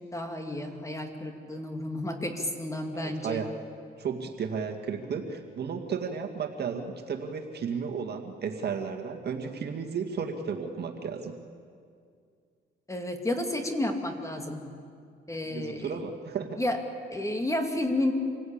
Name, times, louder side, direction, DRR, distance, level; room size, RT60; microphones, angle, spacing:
voice 1, 0.1-3.4 12.9-14.6 15.3-16.0 16.6-16.8 17.1-18.1, left 1 dB, 15° left, 4 dB, 2.6 m, -31 dB
voice 2, 2.9-3.5 4.0-11.3 15.5-16.6, right 6 dB, 55° right, 4 dB, 2.1 m, -33 dB
26.5 x 17.0 x 8.8 m, 2.3 s
cardioid pair, 90°, 20 cm